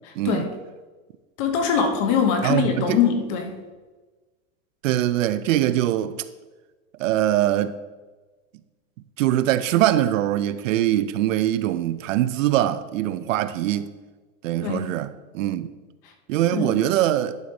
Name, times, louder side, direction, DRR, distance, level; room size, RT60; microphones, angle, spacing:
voice 1, 0.2-0.5 2.4-3.0 4.8-6.3 7.0-7.8 9.2-13.9 14.4-15.7 16.3-17.4, right 13 dB, 75° right, 0.6 m, -22 dB
voice 2, 1.4-3.6 14.6-14.9 16.5-16.7, left 7 dB, 25° left, 0.6 m, -22 dB
11.0 x 5.1 x 3.9 m
supercardioid pair, 180°, 39 cm